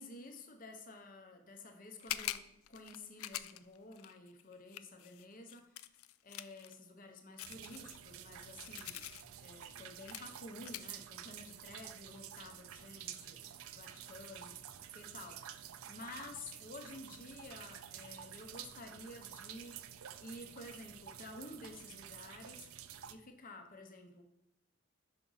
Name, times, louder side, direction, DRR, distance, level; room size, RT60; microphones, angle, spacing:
voice 1, 0.0-2.4 2.7-5.9 6.2-9.0 9.4-14.6 14.9-19.9 20.2-22.7 23.1-24.2, left 2 dB, 40° left, 4 dB, 0.8 m, -52 dB
sound 1, 2.0-6.7 7.4-9.2 9.7-9.8 10.1-10.3 10.6-10.9, left 13 dB, 85° left, 0.4 m, -44 dB
sound 2, 7.4-23.1, right 10 dB, 90° right, 0.5 m, -50 dB
6.1 x 5.3 x 3.9 m, 0.85 s
head